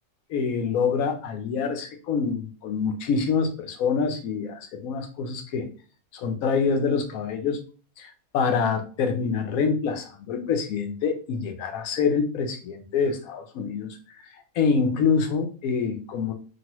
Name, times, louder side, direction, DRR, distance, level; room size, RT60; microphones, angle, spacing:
voice 1, 0.3-5.7 6.1-7.6 8.0-14.3 14.6-16.3, left 5 dB, 80° left, 6 dB, 1.1 m, -26 dB
2.9 x 2.6 x 2.9 m, 0.38 s
omnidirectional pair, 1.5 m